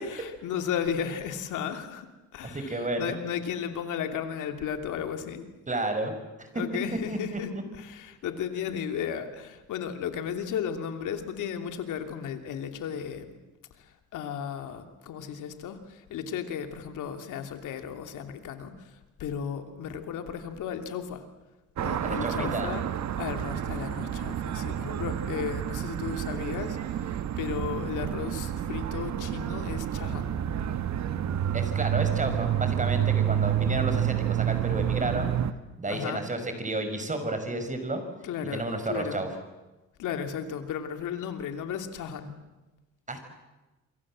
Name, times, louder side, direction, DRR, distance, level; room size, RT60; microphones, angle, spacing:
voice 1, 0.0-5.5 6.5-7.5 7.8-13.4 13.7-21.2 21.8-22.8 23.2-30.3 35.9-36.2 38.2-39.2 40.0-42.3, left 8 dB, 85° left, 7 dB, 2.9 m, -34 dB
voice 2, 2.4-3.2 5.7-6.1 6.4-6.5 6.9-7.4 22.0-22.7 31.5-35.3 35.8-38.0 38.5-39.3 43.1-43.3, right 2 dB, 25° right, 7 dB, 5.8 m, -31 dB
sound 1, 21.8-35.5, right 10 dB, 65° right, 1.5 m, -29 dB
27.5 x 24.0 x 7.6 m, 1.1 s
cardioid pair, 90°, 30 cm